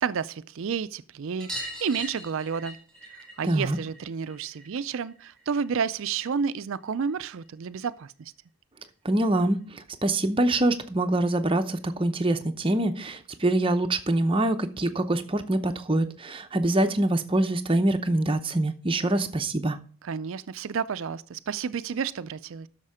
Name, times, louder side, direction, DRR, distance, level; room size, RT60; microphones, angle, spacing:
voice 1, 0.0-2.8 3.4-8.3 20.0-22.7, right 6 dB, 60° right, 0.4 m, -30 dB
sound 1, 1.4-6.5 6.8-7.9 9.3-9.4 9.6-9.7 10.0-10.1 11.4-11.5 11.8-11.9 12.2-12.3 13.5-13.6 14.4-14.5, right 1 dB, 5° left, 4.1 m, -42 dB
voice 2, 3.4-3.8 9.0-19.8, right 1 dB, 25° right, 0.7 m, -25 dB
9.8 x 6.6 x 4.9 m
head